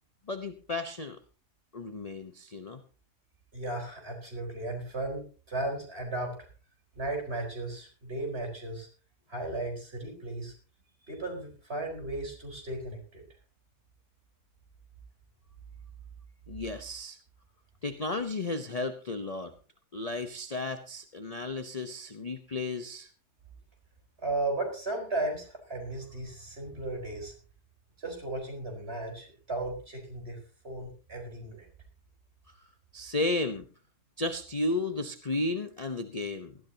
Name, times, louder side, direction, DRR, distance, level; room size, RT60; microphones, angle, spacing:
voice 1, 0.3-1.2 1.7-2.8 16.5-17.2 17.8-19.5 19.9-23.1 32.9-33.7 34.2-36.6, left 2 dB, 30° left, 8 dB, 0.8 m, -33 dB
voice 2, 3.5-6.5 6.9-8.9 9.3-10.5 11.0-13.2 24.2-27.3 28.0-30.4 30.6-31.7, right 2 dB, 40° right, 1 dB, 4.8 m, -35 dB
18.5 x 13.5 x 2.8 m, 0.36 s
omnidirectional pair, 1.7 m